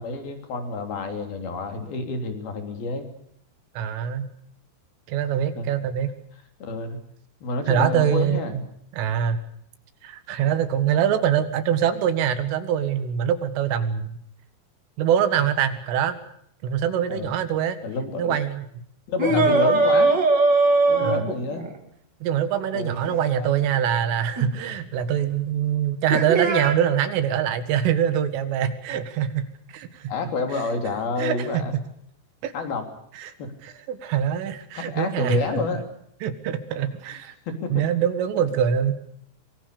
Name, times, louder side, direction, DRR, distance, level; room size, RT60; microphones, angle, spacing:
voice 1, 0.0-3.1 5.6-5.7 6.6-7.0 7.4-8.6 17.1-17.4 17.8-18.4 19.1-20.2 20.9-21.7 22.7-23.6 30.1-31.7 32.5-32.8 33.4-33.5 34.7-35.8 37.5-37.9, left 3 dB, 50° left, 6 dB, 4.8 m, -29 dB
voice 2, 3.8-4.3 5.1-6.1 7.7-8.6 8.9-9.4 10.0-14.2 15.0-16.2 16.6-17.8 18.2-18.7 19.3-19.5 21.0-21.2 22.2-29.5 29.7-30.0 30.5-30.7 31.2-31.6 32.4-32.5 33.1-33.3 33.6-35.4 36.2-37.3 37.7-38.9, right 9 dB, 80° right, 10 dB, 4.2 m, -24 dB
sound 1, 19.2-21.8 24.4-24.5 26.1-26.7, right 3 dB, 30° right, 2.2 m, -20 dB
24.5 x 23.5 x 6.8 m, 0.70 s
omnidirectional pair, 5.8 m